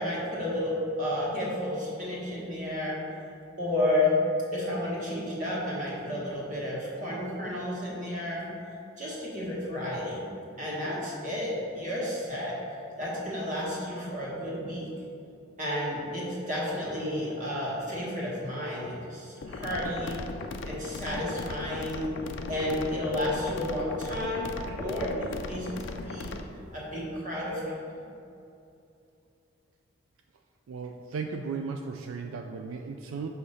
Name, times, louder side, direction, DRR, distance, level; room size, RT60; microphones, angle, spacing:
voice 1, 0.0-3.0 3.6-4.1 4.5-8.5 9.0-10.2 10.6-12.6 13.0-14.9 15.6-20.2 20.6-22.1 22.5-24.5 24.8-26.3 26.7-27.6, left 1 dB, 40° right, -6 dB, 1.4 m, -31 dB
sound 1, 19.4-26.4, left 3 dB, 60° left, 0.4 m, -38 dB
voice 2, 30.7-33.3, right 5 dB, 75° right, 4 dB, 0.3 m, -36 dB
6.3 x 2.8 x 5.5 m, 2.7 s
head